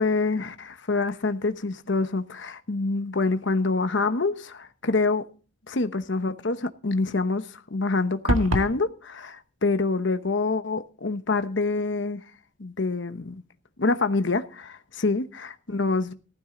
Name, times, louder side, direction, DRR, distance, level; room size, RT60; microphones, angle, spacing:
voice 1, 0.0-5.3 5.7-12.2 12.6-13.3 13.8-16.1, left 3 dB, 65° left, 1.0 m, -26 dB
sound 1, 8.3-8.8, equal, 80° right, 2.0 m, -24 dB
15.5 x 13.0 x 3.9 m
head